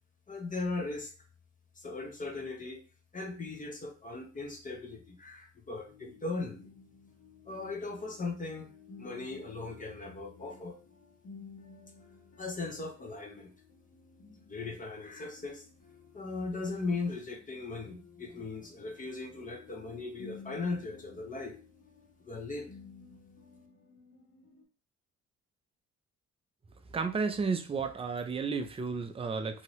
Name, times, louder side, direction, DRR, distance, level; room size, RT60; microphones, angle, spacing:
voice 1, 0.3-1.1 1.8-2.8 3.1-6.7 7.5-8.7 9.0-10.8 12.4-13.5 14.5-15.6 16.1-21.6 22.2-22.7, left 3 dB, 25° left, 2 dB, 0.7 m, -38 dB
sound 1, 5.8-24.6, left 4 dB, 55° left, 1.5 m, -55 dB
voice 2, 26.9-29.6, right 5 dB, 20° right, 7 dB, 0.4 m, -32 dB
2.8 x 2.8 x 3.0 m, 0.36 s
cardioid pair, 90°, 30 cm